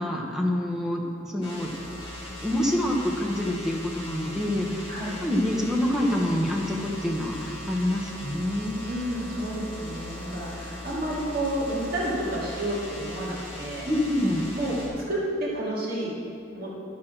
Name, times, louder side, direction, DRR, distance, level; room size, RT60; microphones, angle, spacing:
voice 1, 0.0-1.7 2.4-4.9 5.2-8.8 10.3-10.7 13.8-14.5, left 1 dB, 5° right, -1 dB, 1.1 m, -27 dB
sound 1, 1.4-14.9, left 1 dB, 30° left, 2.4 m, -39 dB
voice 2, 8.8-13.9 14.5-14.8 15.1-16.2 16.5-16.7, right 1 dB, 55° right, -6 dB, 2.4 m, -30 dB
11.0 x 4.7 x 6.1 m, 2.5 s
head